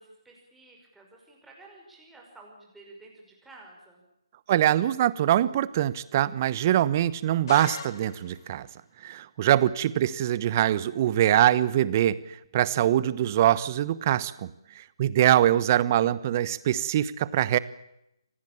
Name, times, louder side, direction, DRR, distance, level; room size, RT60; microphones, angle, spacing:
voice 1, 0.0-4.0 10.0-10.1, right 2 dB, 5° right, -1 dB, 5.7 m, -52 dB
voice 2, 4.5-8.7 9.0-17.6, right 12 dB, 35° right, 18 dB, 1.1 m, -23 dB
sound 1, 7.5-8.6, left 7 dB, 45° left, 2.9 m, -39 dB
27.0 x 19.0 x 8.8 m, 0.84 s
figure-of-eight pair, 150°, 3 cm